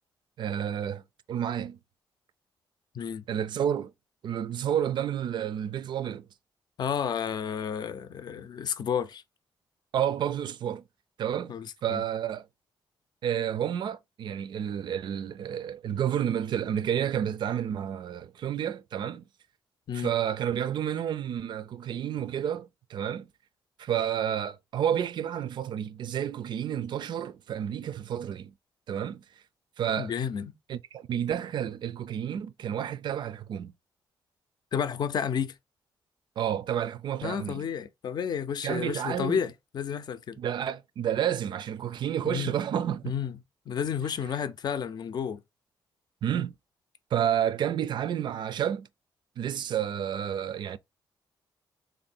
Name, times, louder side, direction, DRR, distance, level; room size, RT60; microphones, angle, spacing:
voice 1, 0.4-1.0 1.3-1.8 3.3-3.9 4.2-6.3 9.9-10.8 11.2-11.5 11.8-12.4 13.2-19.2 19.9-23.3 23.8-28.5 28.9-29.2 29.8-30.1 30.7-33.7 36.4-37.7 38.6-39.4 40.4-43.1 46.2-46.5 47.1-48.9 49.4-50.8, right 9 dB, 65° right, 0.4 m, -30 dB
voice 2, 6.8-9.2 11.5-12.0 19.9-20.1 30.0-30.5 34.7-35.5 37.2-40.4 42.2-42.5 43.0-43.3 43.7-45.4, left 7 dB, 55° left, 0.5 m, -31 dB
3.5 x 2.6 x 4.2 m
cardioid pair, 110°, 8 cm